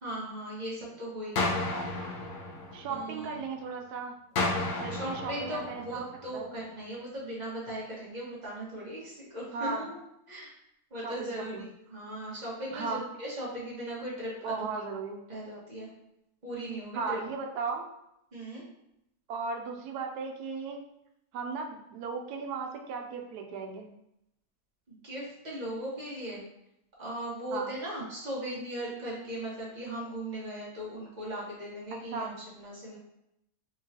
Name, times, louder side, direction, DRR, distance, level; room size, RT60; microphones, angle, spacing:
voice 1, 0.0-1.6 2.9-3.4 4.9-10.0 10.3-10.5 10.9-11.6 11.9-14.6 15.3-15.9 16.4-17.2 18.3-18.6 25.0-26.4 27.0-33.0, right 1 dB, 30° right, -6 dB, 1.3 m, -38 dB
sound 1, 1.4-3.4 4.4-6.4, left 2 dB, 70° left, 1.1 m, -33 dB
voice 2, 1.7-2.2 2.7-4.2 4.8-6.1 6.3-6.5 9.5-9.9 11.0-11.7 12.7-13.0 14.4-15.2 16.9-17.8 19.3-20.8 21.3-23.9 27.5-27.7 32.1-32.3, right 4 dB, 85° right, 3 dB, 1.1 m, -36 dB
3.7 x 3.1 x 2.8 m, 0.81 s
omnidirectional pair, 1.6 m